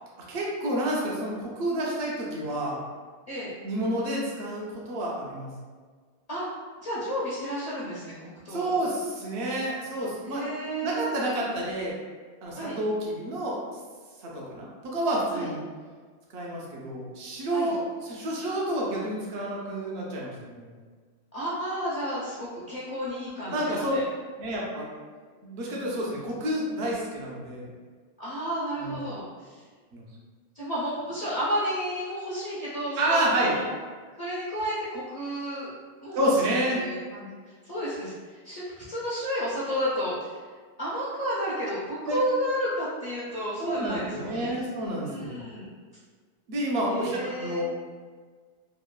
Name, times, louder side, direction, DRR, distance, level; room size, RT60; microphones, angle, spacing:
voice 1, 0.3-2.8 3.6-5.5 8.5-10.4 10.8-12.0 12.4-13.6 14.2-15.6 16.3-20.7 23.5-24.0 24.4-24.9 25.4-27.7 28.8-29.1 29.9-30.1 33.0-33.5 36.1-36.8 42.1-42.2 43.6-45.4 46.5-47.8, right 1 dB, 65° right, -3 dB, 0.8 m, -29 dB
voice 2, 6.8-8.1 8.4-8.8 10.2-11.1 12.6-12.8 15.3-15.5 17.5-17.7 21.3-24.0 28.2-29.6 30.5-33.7 34.2-35.7 36.0-37.3 37.6-38.1 38.4-40.4 40.8-44.5 45.0-45.7 46.8-47.6, equal, 45° left, -9 dB, 0.5 m, -32 dB
3.0 x 2.1 x 2.2 m, 1.5 s
omnidirectional pair, 1.2 m